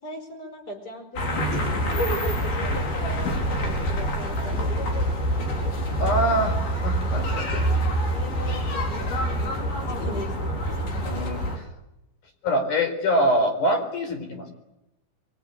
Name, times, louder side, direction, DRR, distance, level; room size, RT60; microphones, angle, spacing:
voice 1, 0.0-4.9 5.3-5.8 8.1-10.9, left 2 dB, 25° left, 5 dB, 5.1 m, -40 dB
sound 1, 1.2-11.6, right 1 dB, 75° left, 6.5 m, -26 dB
voice 2, 6.0-7.6 11.0-11.4 12.4-14.5, equal, 55° left, 6 dB, 5.6 m, -24 dB
24.5 x 23.0 x 9.9 m, 0.90 s
omnidirectional pair, 4.4 m